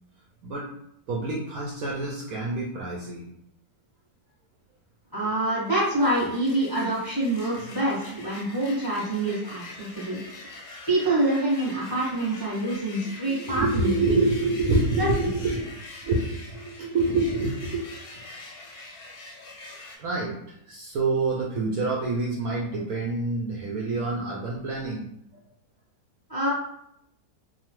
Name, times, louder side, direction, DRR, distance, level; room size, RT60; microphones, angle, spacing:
voice 1, 1.1-3.2 13.1-15.6 16.0-17.8 18.1-18.2 20.0-25.1, right 2 dB, 70° right, -3 dB, 0.9 m, -27 dB
voice 2, 5.1-10.2 10.5-14.1 15.0-15.3 26.3-26.5, right 1 dB, 20° left, -7 dB, 0.6 m, -26 dB
sound 1, 5.6-20.0, left 2 dB, 65° left, 1.0 m, -44 dB
2.9 x 2.1 x 2.9 m, 0.77 s
omnidirectional pair, 1.9 m